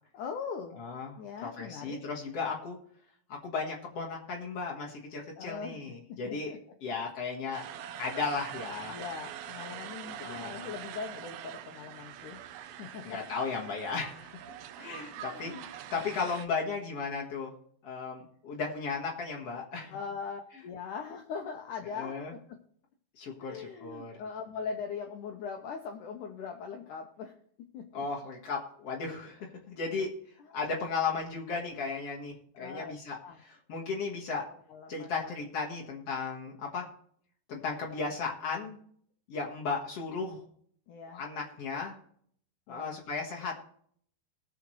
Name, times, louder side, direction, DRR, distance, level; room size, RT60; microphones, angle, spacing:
voice 1, 0.1-0.8 1.2-2.0 5.4-5.8 6.1-6.6 8.9-12.4 12.8-13.3 15.2-15.7 15.9-16.2 19.9-22.2 23.4-27.3 27.7-28.1 30.4-30.6 32.5-32.9 33.2-33.4 34.7-35.3 37.9-38.1 40.9-41.2 42.7-43.0, left 6 dB, 85° left, 3 dB, 1.8 m, -41 dB
voice 2, 0.8-1.2 1.4-2.8 3.3-6.5 6.8-7.6 8.0-9.0 10.2-10.7 13.0-14.4 14.8-17.5 17.8-20.0 21.9-22.3 23.2-24.2 27.9-30.1 30.5-34.5 34.9-36.9 37.5-38.8 39.3-40.4 41.1-42.0 42.7-43.6, left 4 dB, 55° left, -2 dB, 1.8 m, -35 dB
sound 1, 7.5-16.5, right 10 dB, 80° right, 2.4 m, -44 dB
20.5 x 7.2 x 3.1 m, 0.62 s
omnidirectional pair, 4.8 m